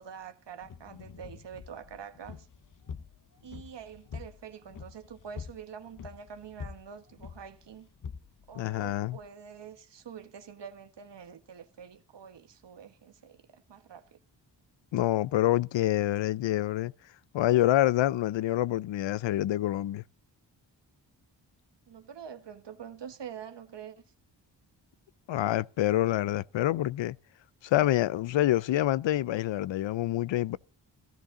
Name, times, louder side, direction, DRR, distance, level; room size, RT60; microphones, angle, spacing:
voice 1, 0.0-2.5 3.4-7.9 8.5-14.2 21.9-24.0, right 7 dB, 65° right, 1.4 m, -46 dB
sound 1, 0.6-9.3, left 6 dB, 45° left, 0.8 m, -46 dB
voice 2, 8.6-9.2 14.9-16.9 17.3-20.0 25.3-27.2 27.6-30.6, left 14 dB, 75° left, 0.6 m, -26 dB
15.0 x 13.0 x 3.7 m
cardioid pair, 55°, 45 cm